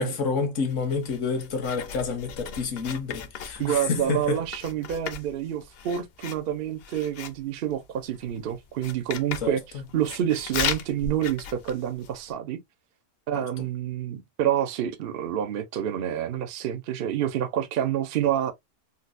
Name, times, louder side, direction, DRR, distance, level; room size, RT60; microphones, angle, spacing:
voice 1, 0.0-4.4 9.4-9.6 13.3-13.7, left 5 dB, 80° left, 1.2 m, -29 dB
Writing, 0.7-12.3, left 7 dB, 60° left, 0.7 m, -37 dB
voice 2, 3.6-9.6 9.9-12.6 13.3-18.5, right 10 dB, 60° right, 0.7 m, -28 dB
3.9 x 2.2 x 2.5 m
omnidirectional pair, 1.3 m